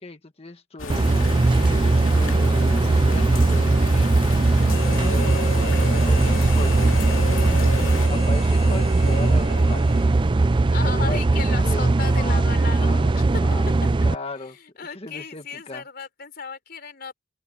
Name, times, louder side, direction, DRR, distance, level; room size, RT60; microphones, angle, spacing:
voice 1, 0.0-4.2 5.1-7.0 8.1-10.0 10.7-12.4 12.8-13.1 13.4-13.7 14.0-15.8, left 2 dB, 30° left, 1.7 m, -37 dB
sound 1, 0.8-8.1, left 3 dB, 90° left, 2.4 m, -33 dB
sound 2, 0.9-14.1, right 2 dB, 25° right, 0.4 m, -19 dB
Harmonica, 4.7-10.5, left 4 dB, 65° left, 2.4 m, -35 dB
voice 2, 10.7-13.2 14.8-17.1, left 5 dB, 50° left, 4.3 m, -34 dB
head